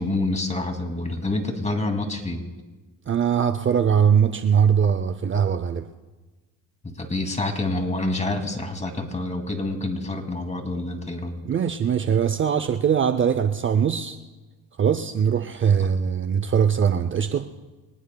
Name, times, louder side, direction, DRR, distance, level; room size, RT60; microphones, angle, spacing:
voice 1, 0.0-2.4 6.8-11.3, left 2 dB, 20° left, 2.5 m, -27 dB
voice 2, 3.1-5.9 11.5-14.2 14.8-17.5, right 7 dB, 35° right, 0.6 m, -21 dB
24.5 x 19.0 x 2.3 m
cardioid pair, 85°, 35 cm